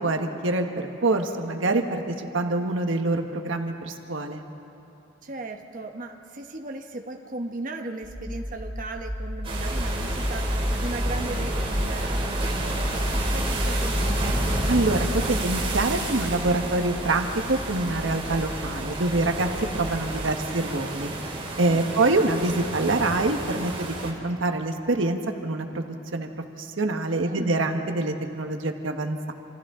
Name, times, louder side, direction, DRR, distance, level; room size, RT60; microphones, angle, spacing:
voice 1, 0.0-4.4 14.7-21.1 21.6-26.3 26.6-29.3, right 2 dB, 90° right, 4 dB, 1.3 m, -25 dB
voice 2, 5.2-14.4 21.7-22.2 27.2-27.7, right 2 dB, 45° right, 3 dB, 1.1 m, -37 dB
sound 1, 8.0-20.2, equal, 15° left, 4.7 m, -30 dB
sound 2, 9.4-24.1, right 2 dB, 30° right, 3.0 m, -32 dB
27.5 x 27.0 x 3.7 m, 2.9 s
head